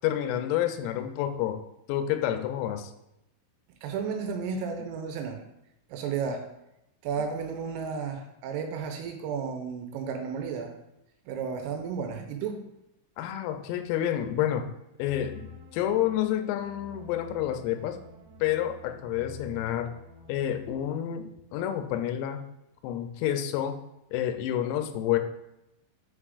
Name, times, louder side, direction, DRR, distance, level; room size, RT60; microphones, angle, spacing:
voice 1, 0.0-1.6 1.9-2.9 13.2-14.7 15.0-18.0 18.4-19.9 20.3-22.5 22.8-23.8 24.1-25.2, left 11 dB, 85° left, 7 dB, 3.3 m, -29 dB
voice 2, 3.8-5.4 5.9-6.5 7.0-10.7 11.3-12.7, right 6 dB, 85° right, 4 dB, 3.2 m, -33 dB
sound 1, 15.0-20.7, left 2 dB, 60° right, 1.8 m, -48 dB
8.6 x 5.0 x 2.4 m, 0.87 s
omnidirectional pair, 6.0 m